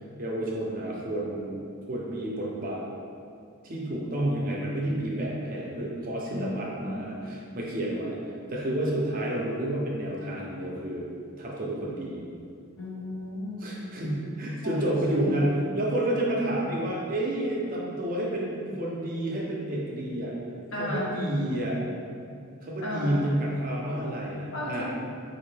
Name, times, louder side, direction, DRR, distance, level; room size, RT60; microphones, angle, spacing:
voice 1, 0.2-2.8 3.6-8.2 8.5-11.1 11.4-12.2 13.6-20.3 20.8-21.8 22.6-24.8, right 1 dB, 40° right, -3 dB, 0.5 m, -30 dB
voice 2, 6.3-7.0 12.8-13.7 14.6-15.4 20.7-21.1 22.8-23.2 24.5-24.8, left 1 dB, 55° left, -5 dB, 0.8 m, -34 dB
4.3 x 2.5 x 3.3 m, 2.4 s
head